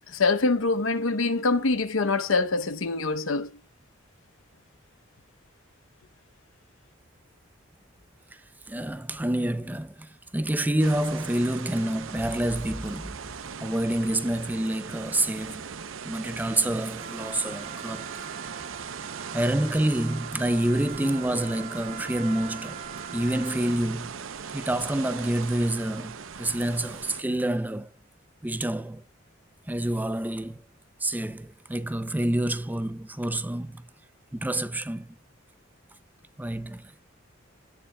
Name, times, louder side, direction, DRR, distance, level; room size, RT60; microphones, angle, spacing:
voice 1, 0.1-3.5, left 3 dB, 80° left, 0.8 m, -24 dB
voice 2, 8.7-13.2 13.6-15.6 16.0-18.1 19.3-22.8 23.1-24.2 24.5-27.9 28.4-29.0 29.7-30.6 31.0-33.8 34.3-35.1 36.4-37.0, right 1 dB, 10° right, 0.5 m, -28 dB
sound 1, 10.8-27.2, right 6 dB, 75° right, 0.7 m, -39 dB
Trumpet, 17.0-24.0, right 6 dB, 55° right, 1.5 m, -43 dB
17.0 x 7.0 x 2.3 m
head